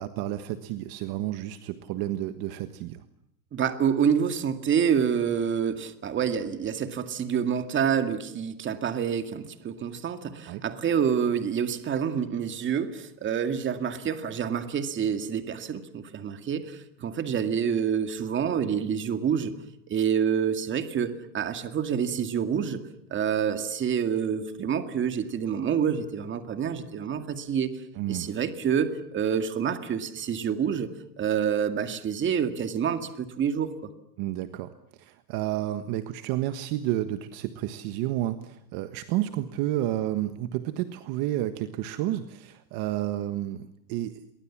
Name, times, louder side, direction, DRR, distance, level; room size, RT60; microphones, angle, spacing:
voice 1, 0.0-3.0 10.5-10.6 27.9-28.3 34.2-34.7 35.0-44.3, right 14 dB, 45° right, 10 dB, 1.5 m, -31 dB
voice 2, 3.5-19.5 19.9-22.8 23.1-27.7 28.1-30.9 31.2-33.9, right 7 dB, 25° right, 9 dB, 2.2 m, -27 dB
30.0 x 23.5 x 7.4 m, 0.77 s
supercardioid pair, 155°, 49 cm